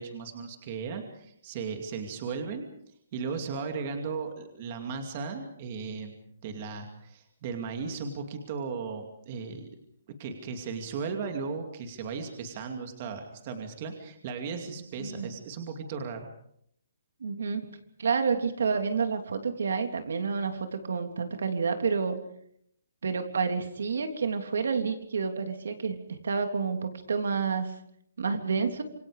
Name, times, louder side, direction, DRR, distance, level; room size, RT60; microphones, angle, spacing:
voice 1, 0.0-2.7 3.1-6.1 6.4-9.7 10.2-16.3, right 5 dB, 25° right, 5 dB, 2.5 m, -36 dB
voice 2, 15.0-15.3 17.2-17.7 18.0-22.2 23.0-27.8 28.2-28.8, right 5 dB, 70° right, 6 dB, 3.4 m, -29 dB
27.0 x 24.5 x 5.1 m, 0.69 s
hypercardioid pair, 175°, 0 cm